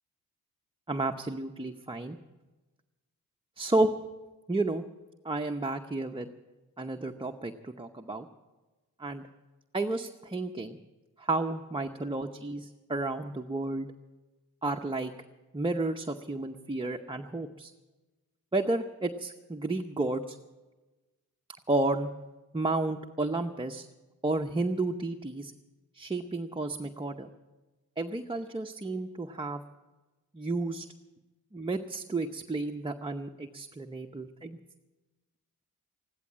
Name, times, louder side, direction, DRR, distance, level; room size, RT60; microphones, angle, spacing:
voice 1, 0.9-2.2 3.6-3.9 4.5-4.8 5.2-6.3 6.8-8.3 9.0-9.3 9.7-10.8 11.2-13.9 14.6-15.1 15.5-17.7 18.5-20.4 21.7-22.1 22.5-23.9 24.2-25.5 25.9-27.3 28.0-29.6 30.3-30.9 31.5-34.6, right 2 dB, 15° right, 3 dB, 0.8 m, -31 dB
15.0 x 12.0 x 7.4 m, 1.2 s
cardioid pair, 60°, 36 cm